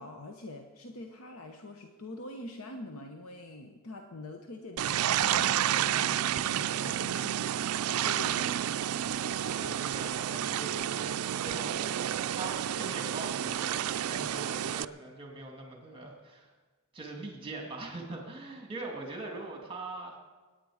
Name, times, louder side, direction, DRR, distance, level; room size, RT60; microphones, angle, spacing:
voice 1, 0.0-7.4 7.9-9.1 14.2-14.3, left 2 dB, 70° left, 4 dB, 1.0 m, -45 dB
sound 1, 4.8-14.8, right 11 dB, 75° right, 0.4 m, -30 dB
sound 2, 5.2-8.7, right 2 dB, 85° left, 3.2 m, -47 dB
voice 2, 9.2-16.5 16.9-20.2, right 2 dB, 25° right, 1 dB, 2.2 m, -42 dB
22.5 x 9.9 x 5.0 m, 1.3 s
head